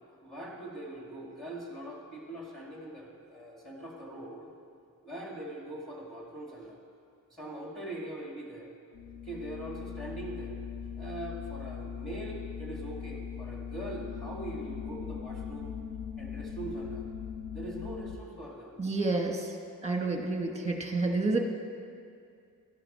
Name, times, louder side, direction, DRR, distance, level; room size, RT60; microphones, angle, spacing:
voice 1, 0.2-4.5 5.0-6.8 7.3-8.7 9.2-10.6 11.0-15.7 16.2-17.0 17.5-18.7, right 1 dB, ahead, -2 dB, 2.4 m, -42 dB
sound 1, 8.9-18.2, left 7 dB, 80° left, 0.9 m, -40 dB
voice 2, 18.8-19.6 19.8-21.4, right 3 dB, 20° right, 2 dB, 1.4 m, -29 dB
12.0 x 12.0 x 4.4 m, 2.3 s
wide cardioid pair, 125°, 34 cm